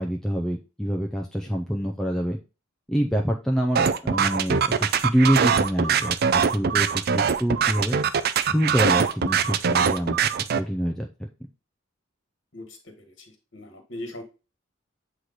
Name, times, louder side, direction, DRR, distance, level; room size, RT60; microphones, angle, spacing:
voice 1, 0.0-2.4 2.9-8.0 8.4-10.3 10.6-11.3, equal, 5° left, 1 dB, 0.5 m, -26 dB
sound 1, 3.8-10.6, right 6 dB, 50° right, 0.4 m, -22 dB
voice 2, 12.5-14.2, left 1 dB, 65° left, 4 dB, 1.4 m, -40 dB
8.1 x 3.1 x 3.9 m, 0.31 s
head